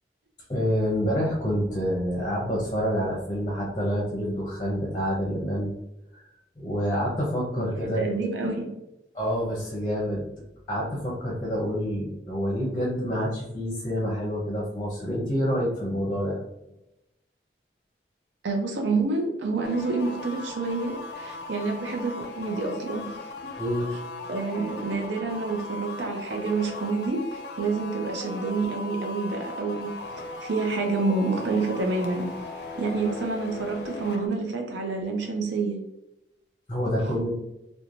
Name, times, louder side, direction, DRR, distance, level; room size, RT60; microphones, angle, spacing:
voice 1, 0.5-5.7 6.6-8.0 9.1-10.2 10.7-16.4 23.6-23.9 36.7-37.3, equal, 20° left, -3 dB, 0.6 m, -27 dB
voice 2, 7.8-8.7 18.4-23.2 24.3-30.0 30.4-32.3 32.8-35.8, right 3 dB, 85° right, 2 dB, 0.5 m, -28 dB
sound 1, 19.6-34.3, left 3 dB, 70° left, 0.4 m, -38 dB
3.0 x 2.1 x 2.5 m, 0.89 s
head